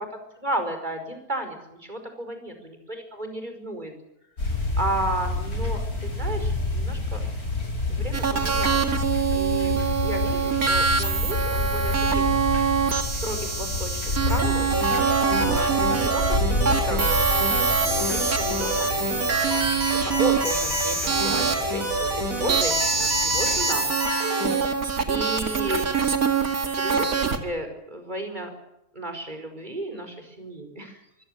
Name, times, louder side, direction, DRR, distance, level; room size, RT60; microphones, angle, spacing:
voice 1, 0.4-3.9 4.8-7.2 7.9-8.9 9.3-9.7 10.0-12.2 13.0-14.8 15.4-17.0 17.8-19.6 19.9-23.8 25.1-25.9 26.8-28.5 28.9-31.0, right 1 dB, 30° right, 6 dB, 5.2 m, -33 dB
sound 1, 4.4-23.6, left 2 dB, 90° left, 6.2 m, -29 dB
sound 2, 8.1-16.4 16.6-21.5 22.5-27.4, right 5 dB, 85° right, 2.6 m, -25 dB
sound 3, 14.7-24.6, right 1 dB, 70° right, 7.5 m, -27 dB
25.0 x 16.5 x 9.7 m, 0.84 s
omnidirectional pair, 1.5 m